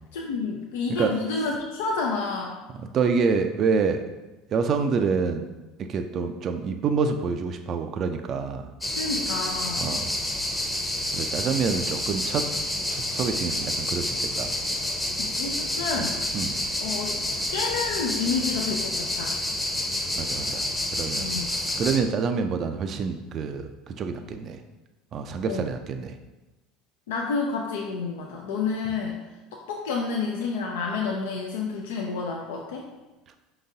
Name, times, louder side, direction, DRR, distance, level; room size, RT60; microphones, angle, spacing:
voice 1, 0.1-2.6 9.0-10.0 15.2-16.2 16.8-17.2 17.5-19.3 21.1-21.5 25.5-25.7 27.1-29.2 29.5-32.9, left 4 dB, 85° left, 0 dB, 0.5 m, -29 dB
voice 2, 2.9-4.0 4.5-5.4 5.8-8.7 9.8-10.1 11.1-12.5 12.9-14.5 16.0-16.1 16.3-16.6 20.2-20.7 20.9-24.6 25.1-26.2, right 5 dB, 45° right, 7 dB, 0.4 m, -27 dB
sound 1, 8.8-22.0, left 1 dB, 10° left, 0.7 m, -29 dB
5.1 x 3.9 x 2.7 m, 1.1 s
hypercardioid pair, 80°, 0 cm